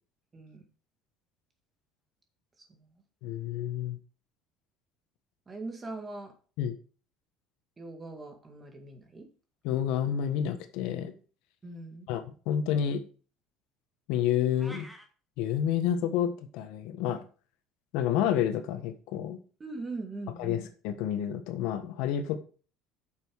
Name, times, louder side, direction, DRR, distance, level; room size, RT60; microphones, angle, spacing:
voice 1, 0.3-0.6 2.6-2.9 5.5-6.4 7.8-9.3 11.6-12.1 19.6-20.6, right 3 dB, 15° right, 4 dB, 2.0 m, -41 dB
voice 2, 3.2-4.0 6.6-6.8 9.6-11.1 12.1-13.0 14.1-14.9 15.4-17.2 17.9-19.4 20.4-22.4, left 9 dB, 75° left, 9 dB, 1.3 m, -29 dB
sound 1, 14.6-15.1, equal, ahead, 1.4 m, -46 dB
9.0 x 6.9 x 4.7 m, 0.38 s
cardioid pair, 160°, 0 cm